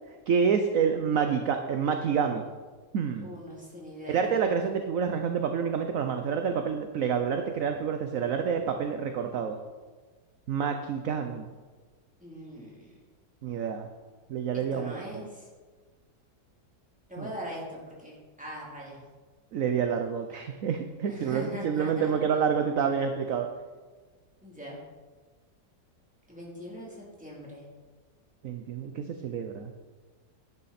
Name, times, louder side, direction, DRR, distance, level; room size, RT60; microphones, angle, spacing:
voice 1, 0.3-2.4 2.9-3.3 4.1-9.6 10.5-11.5 13.4-13.9 14.3-15.3 17.2-17.3 19.5-23.5 28.4-29.7, right 6 dB, 60° right, 6 dB, 1.0 m, -28 dB
voice 2, 3.2-4.6 12.2-12.9 14.7-15.5 17.1-19.0 21.0-22.1 24.4-24.8 26.3-27.6, equal, 5° right, -5 dB, 3.1 m, -41 dB
11.0 x 11.0 x 4.2 m, 1.4 s
omnidirectional pair, 1.8 m